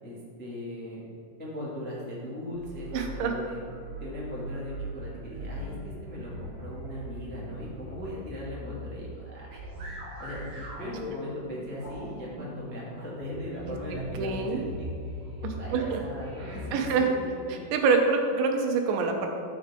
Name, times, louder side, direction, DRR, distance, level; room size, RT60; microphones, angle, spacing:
voice 1, 0.0-1.0 1.4-3.6 4.0-9.6 10.2-14.9 15.4-17.6, left 1 dB, 15° left, -7 dB, 0.4 m, -39 dB
sound 1, 2.5-16.9, equal, 50° right, 3.0 m, -40 dB
voice 2, 2.9-3.3 13.7-13.8 14.2-14.6 15.4-16.0 16.7-17.1 17.7-19.3, right 4 dB, 90° right, 3 dB, 3.3 m, -26 dB
13.0 x 6.9 x 3.8 m, 2.5 s
omnidirectional pair, 5.0 m